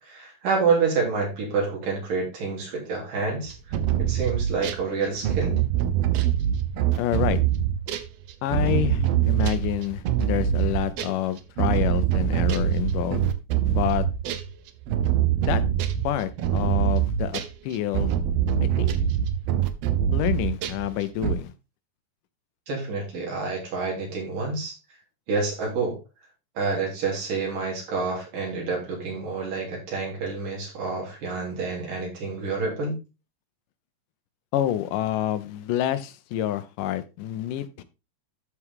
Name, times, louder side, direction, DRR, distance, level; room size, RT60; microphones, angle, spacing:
voice 1, 0.0-3.5 4.0-5.6 22.7-24.7 25.3-26.0 26.5-33.0, right 4 dB, 90° right, -2 dB, 5.1 m, -28 dB
sound 1, 3.5-4.8 5.2-11.2 11.6-20.9 21.2-21.3, right 10 dB, 75° right, 1.5 m, -24 dB
voice 2, 7.0-7.4 8.4-13.3 13.6-14.1 15.5-15.6 16.0-18.1 18.6-18.9 20.1-21.5 34.5-37.8, left 12 dB, 85° left, 12 dB, 2.4 m, -28 dB
13.0 x 4.7 x 3.7 m, 0.27 s
omnidirectional pair, 3.7 m